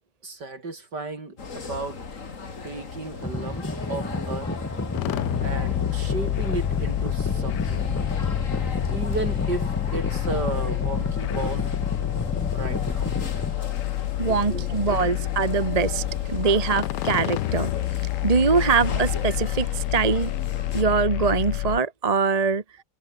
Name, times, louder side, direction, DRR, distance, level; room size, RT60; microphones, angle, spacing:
voice 1, 0.2-2.0 2.6-4.5 5.4-7.9 8.9-11.8 12.5-13.2 14.2-14.7, right 3 dB, 60° right, 5.2 m, -34 dB
sound 1, 1.4-20.8, left 4 dB, 40° left, 2.6 m, -37 dB
sound 2, 3.2-13.6, left 2 dB, 10° left, 0.7 m, -31 dB
sound 3, 5.0-21.8, left 16 dB, 75° left, 1.1 m, -28 dB
voice 2, 14.2-17.7 18.2-20.3 20.7-22.6, right 5 dB, 25° right, 1.0 m, -23 dB
omnidirectional pair, 2.1 m